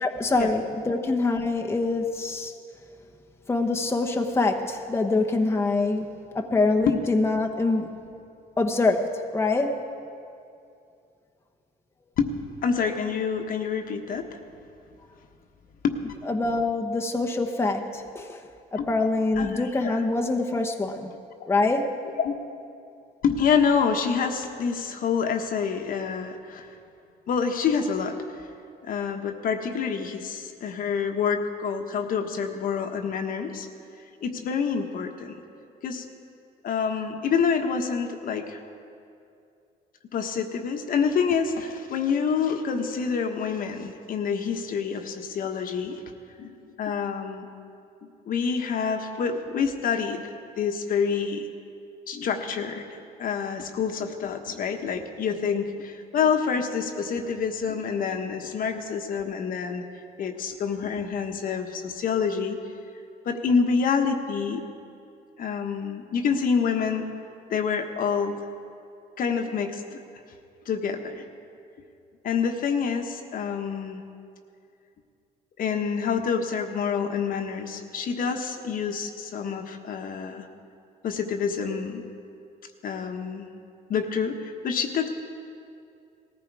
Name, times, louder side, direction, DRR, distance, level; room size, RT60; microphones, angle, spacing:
voice 1, 0.0-2.5 3.5-8.0 8.6-9.8 16.3-18.4 18.7-21.1 21.5-21.9, left 3 dB, 15° left, 2 dB, 1.0 m, -25 dB
voice 2, 12.6-14.3 15.8-15.9 18.8-18.9 19.4-20.0 21.4-21.5 22.2-22.3 23.2-26.7 27.3-28.4 28.8-33.7 34.2-35.3 35.8-36.0 36.6-38.6 40.1-46.0 46.4-47.5 48.3-51.5 52.1-59.8 60.2-62.6 63.2-64.6 65.4-67.1 67.5-68.4 69.2-70.0 70.7-71.2 72.2-74.0 75.6-80.5 81.0-82.0 82.8-83.5 83.9-85.1, left 6 dB, 55° left, 5 dB, 1.3 m, -27 dB
19.0 x 15.0 x 4.8 m, 2.5 s
cardioid pair, 110°, 17 cm